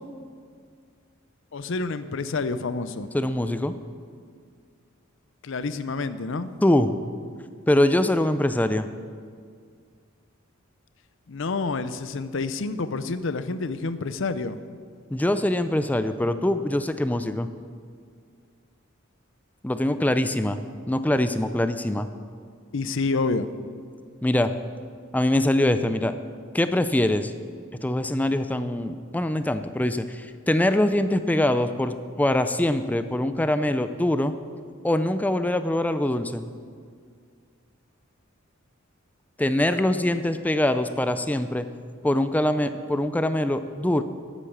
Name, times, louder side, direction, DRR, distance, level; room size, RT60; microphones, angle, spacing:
voice 1, 1.5-3.1 5.4-6.5 11.3-14.6 22.7-23.5, left 3 dB, 65° left, 13 dB, 0.6 m, -28 dB
voice 2, 3.1-3.7 6.6-6.9 7.7-8.9 15.1-17.5 19.6-20.6 20.9-22.1 24.2-24.5 25.1-26.1 26.5-27.3 27.8-34.3 34.8-36.4 39.4-41.7 42.0-44.0, left 1 dB, 10° left, 10 dB, 0.4 m, -23 dB
12.5 x 8.3 x 7.2 m, 2.1 s
head